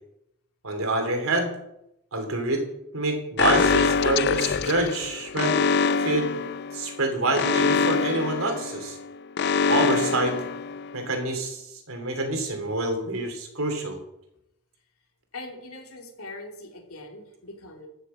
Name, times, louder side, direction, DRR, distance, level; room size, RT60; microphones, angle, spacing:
voice 1, 0.6-1.5 2.1-2.6 2.9-5.6 6.0-6.3 6.7-9.0 9.7-10.4 10.9-11.6 11.9-14.0, right 2 dB, 75° right, 4 dB, 2.9 m, -26 dB
Alarm, 3.4-11.1, left 5 dB, 50° left, 0.4 m, -25 dB
voice 2, 15.3-17.9, left 2 dB, 85° left, 2 dB, 2.9 m, -41 dB
14.0 x 6.7 x 7.5 m, 0.84 s
head